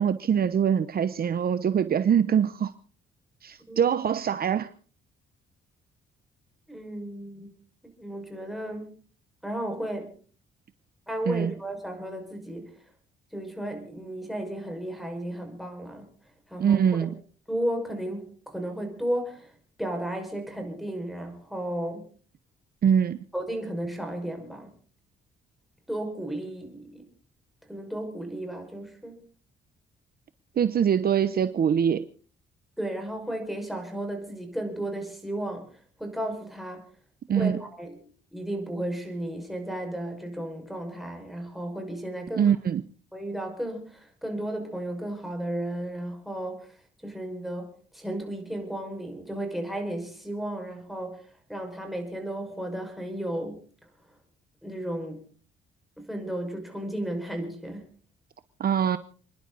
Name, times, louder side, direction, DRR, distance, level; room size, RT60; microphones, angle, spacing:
voice 1, 0.0-2.7 3.4-4.7 11.3-11.5 16.6-17.1 22.8-23.2 30.6-32.1 37.3-37.6 42.4-42.8 58.6-59.0, right 8 dB, 50° right, 0.9 m, -23 dB
voice 2, 6.7-7.6 8.0-8.9 9.4-10.1 11.1-12.7 13.3-16.1 16.5-16.8 17.5-19.5 19.8-22.0 23.3-24.7 25.9-27.1 27.7-29.2 32.8-35.7 36.0-36.8 37.3-38.0 38.3-42.5 43.1-46.7 47.0-53.6 54.6-55.2 56.0-57.9, right 1 dB, ahead, 5.8 m, -34 dB
29.5 x 11.0 x 4.1 m
cardioid pair, 90°, 20 cm